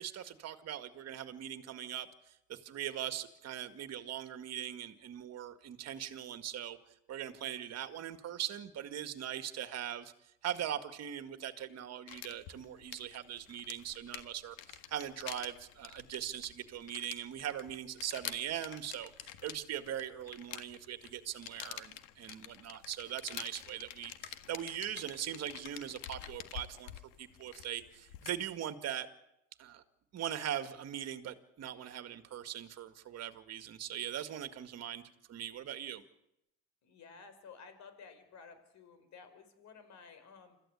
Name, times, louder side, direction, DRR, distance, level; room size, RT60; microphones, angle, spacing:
voice 1, 0.0-6.8 7.1-10.1 10.4-26.9 27.2-29.1 29.6-29.8 30.1-35.0 35.3-36.0, right 10 dB, 50° right, 9 dB, 2.0 m, -41 dB
sound 1, 12.1-28.5, left 12 dB, 80° left, 1.7 m, -48 dB
voice 2, 36.8-40.6, left 5 dB, 50° left, 10 dB, 5.2 m, -54 dB
26.5 x 14.5 x 8.4 m, 0.83 s
supercardioid pair, 110°, 35 cm